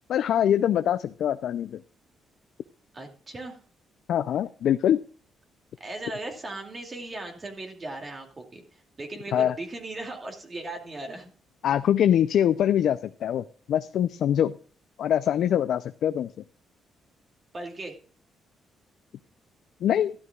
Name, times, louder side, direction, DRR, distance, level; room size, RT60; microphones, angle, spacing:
voice 1, 0.1-1.8 4.1-5.0 9.3-9.5 11.6-14.5 15.0-16.3 19.8-20.1, left 10 dB, 70° left, 12 dB, 0.5 m, -23 dB
voice 2, 2.9-3.6 5.8-11.3 17.5-17.9, right 2 dB, 30° right, 3 dB, 2.5 m, -38 dB
14.0 x 12.0 x 2.4 m, 0.41 s
cardioid pair, 90°, 0 cm